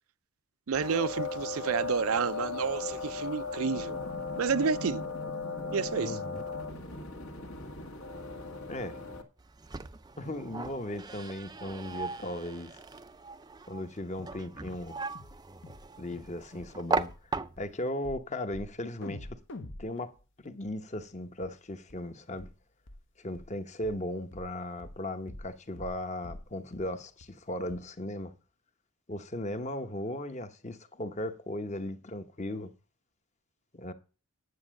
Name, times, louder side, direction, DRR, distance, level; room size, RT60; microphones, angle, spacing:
sound 1, 0.7-9.2, left 4 dB, 70° left, 1.9 m, -37 dB
voice 1, 0.7-4.0 4.4-5.0 5.7-6.2, right 6 dB, 70° right, 0.5 m, -30 dB
voice 2, 6.0-6.5 8.7-9.0 10.2-12.8 13.7-15.0 16.0-19.4 19.8-22.5 23.2-28.3 29.1-32.7 33.7-33.9, left 1 dB, 30° left, 1.0 m, -37 dB
sound 2, 9.4-17.9, right 4 dB, 20° right, 0.4 m, -38 dB
sound 3, 14.2-14.4 14.7-14.9 15.1-15.4 15.6-15.9 16.1-16.3 16.6-16.7 17.1-17.2 17.6-17.7 18.0-18.2 18.5-18.7 19.0-21.0 21.4-21.5 21.9-22.0 22.4-22.5 22.9-23.0 23.3-23.5 23.8-24.0 24.3-24.5 24.8-25.0 25.3-25.5 25.8-26.0 26.2-26.5 26.7-26.9 27.2-27.3 27.7-27.8, left 1 dB, 55° left, 0.9 m, -46 dB
9.7 x 7.8 x 6.4 m
head